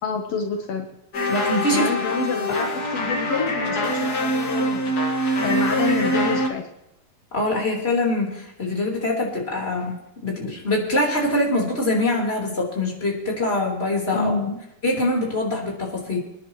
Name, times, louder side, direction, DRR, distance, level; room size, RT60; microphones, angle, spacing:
voice 1, 0.0-0.9 1.7-4.9 5.4-6.7 14.1-14.6, left 4 dB, 75° left, 4 dB, 1.4 m, -27 dB
sound 1, 1.1-6.5, equal, 60° left, 1.0 m, -24 dB
voice 2, 1.3-1.9 2.5-2.6 7.3-10.0 10.2-14.3 14.8-16.2, left 1 dB, 15° left, -2 dB, 3.5 m, -24 dB
27.5 x 10.5 x 3.0 m, 0.90 s
omnidirectional pair, 4.4 m